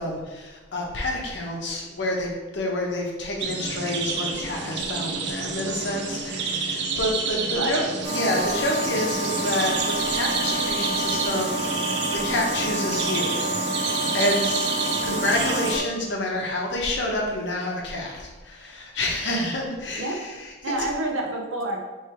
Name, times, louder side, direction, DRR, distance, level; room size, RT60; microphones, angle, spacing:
voice 1, 0.0-13.5 13.8-14.6 15.0-20.7, left 1 dB, 60° left, -1 dB, 0.9 m, -28 dB
sound 1, 3.4-15.7, right 4 dB, 55° right, 0.4 m, -29 dB
voice 2, 7.5-7.8 14.9-15.2 20.0-20.2 20.6-21.8, right 1 dB, 85° right, 1 dB, 0.7 m, -28 dB
sound 2, 8.0-15.8, right 1 dB, 30° right, 0.9 m, -28 dB
3.3 x 3.2 x 4.5 m, 1.2 s
head